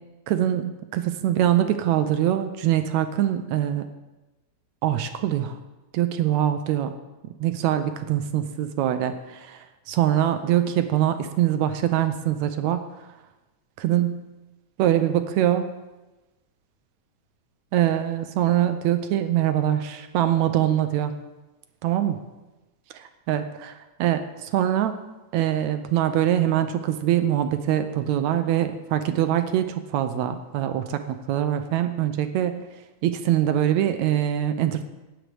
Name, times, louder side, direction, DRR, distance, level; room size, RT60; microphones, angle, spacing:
voice 1, 0.3-3.8 4.8-5.6 5.9-6.9 7.4-9.6 9.9-12.8 13.8-14.2 14.8-15.7 17.7-21.1 21.8-22.2 23.3-24.9 25.3-32.6 33.0-34.8, right 11 dB, 80° right, 8 dB, 1.9 m, -23 dB
19.0 x 9.2 x 3.4 m, 1.1 s
omnidirectional pair, 3.4 m